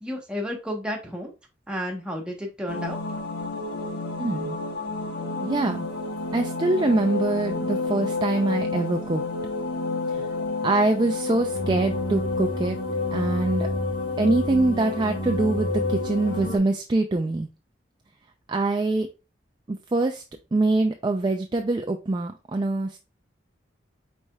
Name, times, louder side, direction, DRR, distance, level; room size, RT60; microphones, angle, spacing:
voice 1, 0.0-1.3 1.7-3.0, equal, 5° right, 0 dB, 1.0 m, -32 dB
sound 1, 2.7-16.6, left 3 dB, 70° left, 1.2 m, -29 dB
voice 2, 4.2-4.6 5.4-5.9 6.3-9.2 10.1-10.3 10.6-12.8 13.1-13.7 14.2-17.5 18.5-19.1 19.7-20.2 20.5-23.0, right 2 dB, 25° right, 5 dB, 0.3 m, -24 dB
4.8 x 4.1 x 2.2 m, 0.29 s
head